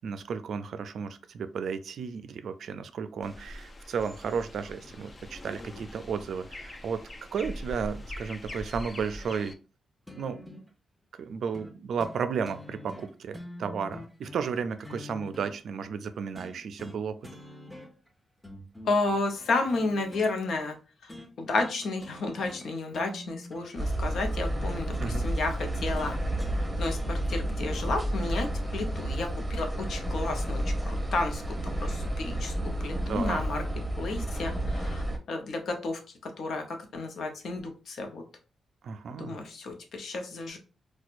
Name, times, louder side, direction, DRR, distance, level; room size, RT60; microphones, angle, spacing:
voice 1, 0.0-7.0 7.3-9.5 10.2-10.4 11.2-17.2 25.0-25.3 33.1-33.4 38.8-39.4, right 6 dB, 70° right, 11 dB, 0.4 m, -33 dB
sound 1, 3.2-9.5, left 1 dB, 35° left, 0.5 m, -42 dB
sound 2, 10.1-10.7 11.5-11.7 12.0-12.2 12.5-15.5 16.4-17.0 17.2-18.1 18.4-20.3 21.1-21.3 21.6-21.8 22.0-22.7 22.9-25.1 26.0-27.9 29.0-29.1, left 2 dB, 10° left, 1.0 m, -45 dB
voice 2, 18.8-21.1 21.4-26.2 26.7-33.6 34.0-38.2 39.2-40.6, left 3 dB, 70° left, 4 dB, 0.7 m, -32 dB
sound 3, 23.8-35.2, right 1 dB, 15° right, 0.9 m, -31 dB
4.2 x 2.3 x 2.5 m, 0.35 s
supercardioid pair, 55°, 0 cm